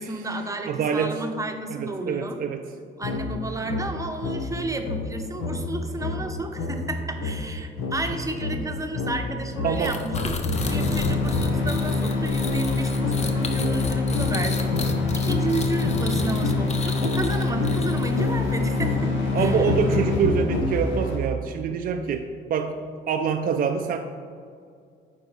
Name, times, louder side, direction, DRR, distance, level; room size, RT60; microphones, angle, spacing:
voice 1, 0.0-2.4 3.0-10.3 10.7-19.7, right 2 dB, 15° right, 5 dB, 0.7 m, -32 dB
voice 2, 0.6-1.2 1.7-2.6 9.6-10.0 19.3-22.2 22.5-22.7 23.1-24.0, right 6 dB, 50° right, 4 dB, 0.4 m, -25 dB
sound 1, 3.0-11.8 12.4-21.1, left 3 dB, 90° left, 0.9 m, -29 dB
sound 2, 9.8-18.3, left 3 dB, 35° left, 0.7 m, -34 dB
sound 3, 10.5-21.2, left 3 dB, 70° left, 1.4 m, -26 dB
8.9 x 4.4 x 3.2 m, 2.3 s
cardioid pair, 90°, 20 cm